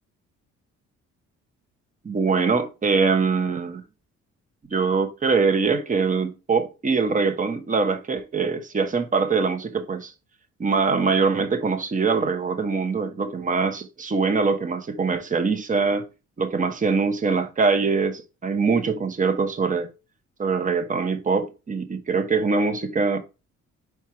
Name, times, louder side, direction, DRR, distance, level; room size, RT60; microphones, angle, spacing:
voice 1, 2.0-3.8 4.7-10.1 10.6-16.1 16.4-19.9 20.4-23.2, right 4 dB, 25° right, 1.0 m, -23 dB
4.8 x 4.5 x 4.4 m
cardioid pair, 90°, 30 cm